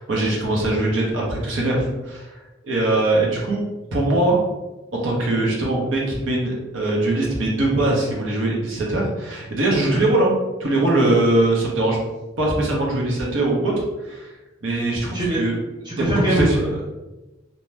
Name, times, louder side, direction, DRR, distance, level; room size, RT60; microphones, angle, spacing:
voice 1, 0.0-2.4 2.6-4.4 5.0-12.0 12.4-13.7 14.0-14.3 14.6-15.6 16.0-16.6, right 2 dB, 70° right, -2 dB, 0.8 m, -21 dB
voice 2, 15.8-16.8, right 1 dB, 20° right, -6 dB, 0.8 m, -23 dB
2.7 x 2.2 x 3.2 m, 1.1 s
head